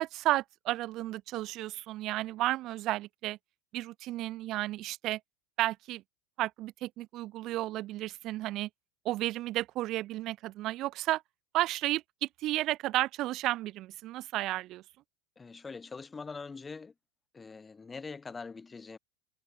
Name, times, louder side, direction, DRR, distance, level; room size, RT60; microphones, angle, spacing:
voice 1, 0.0-3.4 3.7-5.2 5.6-6.0 6.4-8.7 9.0-11.2 11.5-14.8, right 16 dB, 50° right, 0.4 m, -32 dB
voice 2, 15.4-16.9 17.3-19.0, left 4 dB, 20° left, 0.6 m, -43 dB
hypercardioid pair, 85°, 0 cm